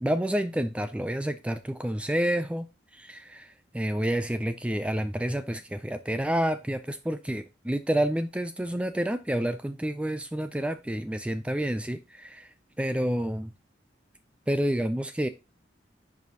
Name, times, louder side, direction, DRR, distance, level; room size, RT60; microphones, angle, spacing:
voice 1, 0.0-12.5 12.8-13.5 14.5-15.3, right 1 dB, 5° right, 0.3 m, -29 dB
10.5 x 4.8 x 2.8 m
head